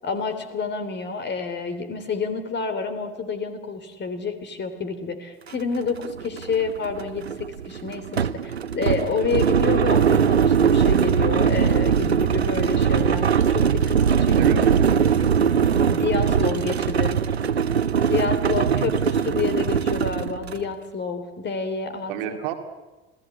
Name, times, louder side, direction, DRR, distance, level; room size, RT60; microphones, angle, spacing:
voice 1, 0.0-7.3 7.6-14.7 15.9-17.2 18.1-22.4, left 4 dB, 35° left, 8 dB, 3.5 m, -29 dB
sound 1, 5.5-5.6 5.9-20.7, right 7 dB, 85° right, 0.7 m, -21 dB
voice 2, 14.3-15.2 18.5-19.3 22.1-22.5, right 9 dB, 60° right, 6 dB, 2.3 m, -29 dB
27.0 x 18.0 x 8.4 m, 1.2 s
figure-of-eight pair, 60°, 31 cm